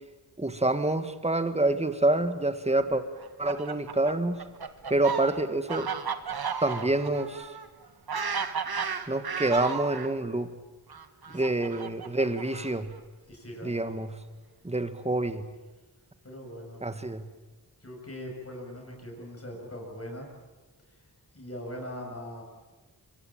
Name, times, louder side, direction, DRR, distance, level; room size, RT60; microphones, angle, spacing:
voice 1, 0.4-3.0 3.4-4.4 4.9-5.9 6.6-7.5 9.1-10.5 11.3-12.9 13.6-14.1 14.6-15.4 16.8-17.2, right 2 dB, 15° right, 10 dB, 1.9 m, -27 dB
Fowl, 3.2-10.1 10.9-12.9, right 6 dB, 65° right, 1.7 m, -34 dB
voice 2, 11.2-11.5 13.3-13.9 16.2-16.8 17.8-20.3 21.3-22.4, equal, 35° left, 0 dB, 7.4 m, -41 dB
25.5 x 24.0 x 9.0 m, 1.2 s
wide cardioid pair, 90°, 40 cm